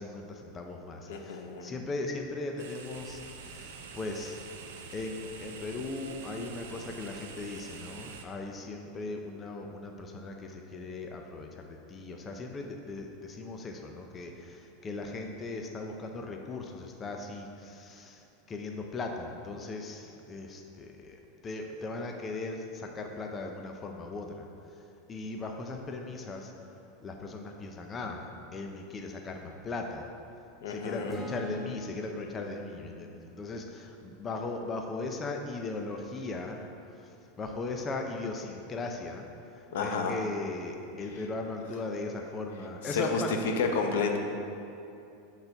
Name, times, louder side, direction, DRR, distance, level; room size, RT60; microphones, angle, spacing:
voice 1, 0.0-3.2 3.5-4.4 4.9-24.5 25.1-26.5 27.0-28.2 28.5-30.1 30.7-36.6 37.0-39.3 39.5-43.3, left 3 dB, 20° left, 2 dB, 0.5 m, -38 dB
voice 2, 1.1-1.7 30.6-31.1 39.7-40.1 42.8-43.2 43.6-44.2, left 5 dB, 80° left, 4 dB, 0.7 m, -30 dB
sound 1, 2.6-8.2, right 5 dB, 85° right, 0.7 m, -46 dB
sound 2, 31.1-35.4, left 1 dB, ahead, 1.0 m, -46 dB
6.7 x 4.0 x 5.7 m, 2.7 s
supercardioid pair, 150°, 0 cm